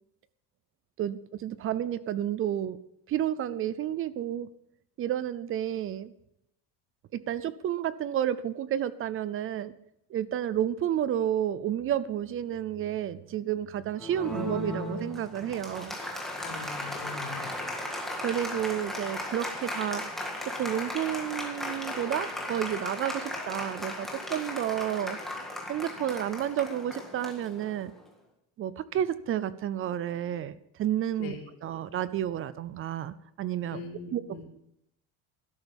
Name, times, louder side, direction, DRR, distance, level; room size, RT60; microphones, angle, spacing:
voice 1, 1.0-2.8 3.1-4.5 5.0-6.1 7.1-9.7 10.1-16.0 18.2-20.0 20.6-25.2 25.7-27.9 28.6-31.3 31.6-33.8 34.1-34.2, right 11 dB, 35° right, 17 dB, 0.4 m, -31 dB
Applause, 13.9-28.0, left 1 dB, ahead, 1.8 m, -36 dB
voice 2, 16.4-17.7 31.2-31.4 33.7-34.4, left 4 dB, 85° left, 0 dB, 4.5 m, -41 dB
12.5 x 11.5 x 5.3 m, 0.77 s
cardioid pair, 170°, 41 cm